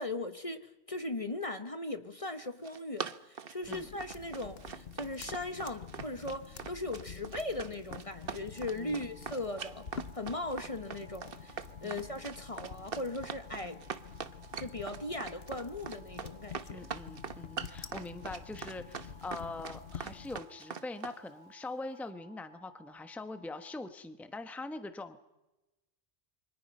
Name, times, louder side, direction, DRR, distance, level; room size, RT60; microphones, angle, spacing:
voice 1, 0.0-9.8 10.1-13.8 14.6-16.9, left 2 dB, 30° left, 1.2 m, -38 dB
Run, 2.4-21.2, right 6 dB, 60° right, 1.2 m, -42 dB
sound 1, 3.6-20.4, left 6 dB, 70° left, 1.3 m, -48 dB
sound 2, 8.5-23.9, right 1 dB, 30° right, 2.7 m, -60 dB
voice 2, 16.7-25.3, left 2 dB, ahead, 1.0 m, -43 dB
27.5 x 24.5 x 5.5 m
omnidirectional pair, 1.1 m